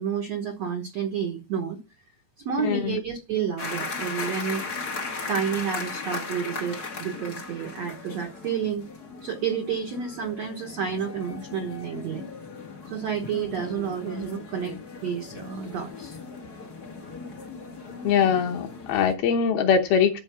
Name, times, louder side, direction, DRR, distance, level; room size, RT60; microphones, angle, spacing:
voice 1, 0.0-1.8 2.4-4.6 5.3-8.9 9.2-12.2 12.9-14.8 15.0-16.2, right 7 dB, 75° right, 1.5 m, -30 dB
voice 2, 2.6-3.0 18.0-20.2, left 7 dB, 70° left, 2.5 m, -22 dB
sound 1, 3.6-19.1, left 4 dB, 90° left, 0.8 m, -37 dB
13.0 x 4.6 x 6.2 m
omnidirectional pair, 5.0 m